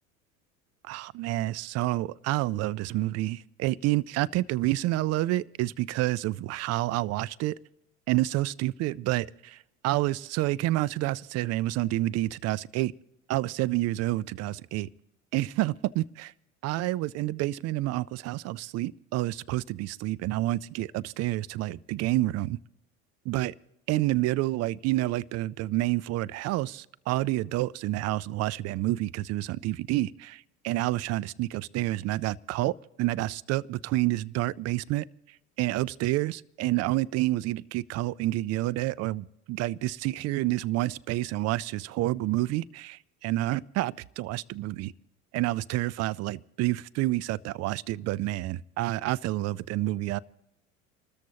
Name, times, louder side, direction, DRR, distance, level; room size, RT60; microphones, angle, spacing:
voice 1, 0.8-7.6 8.1-12.9 13.3-14.9 15.3-16.3 16.6-22.6 23.3-23.5 23.9-35.1 35.6-44.9 45.3-50.2, right 17 dB, 40° right, 0.4 m, -29 dB
28.0 x 13.5 x 2.9 m
hypercardioid pair, 75°, 40 cm